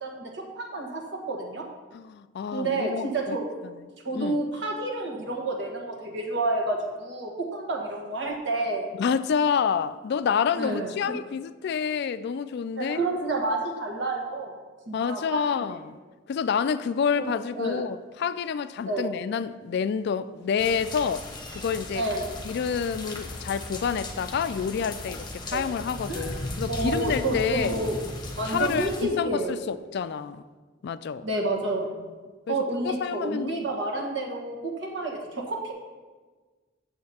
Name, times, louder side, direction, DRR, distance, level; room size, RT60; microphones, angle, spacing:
voice 1, 0.0-1.6 2.5-3.5 4.0-8.9 10.6-10.9 12.8-14.6 14.9-15.4 15.7-15.8 17.1-17.2 17.5-17.8 18.9-19.0 21.9-22.2 25.5-25.6 26.1-26.2 26.7-28.0 28.4-29.5 31.2-31.9 32.5-35.7, right 2 dB, 65° right, 1.5 m, -29 dB
voice 2, 1.9-3.4 3.6-3.7 4.1-4.4 9.0-13.0 14.9-16.0 16.3-22.0 22.4-27.7 28.4-30.4 30.8-31.2 32.5-32.6 32.8-33.7, left 6 dB, 60° left, 0.3 m, -28 dB
sound 1, 20.6-29.0, left 2 dB, 25° left, 1.0 m, -37 dB
7.7 x 7.1 x 4.3 m
head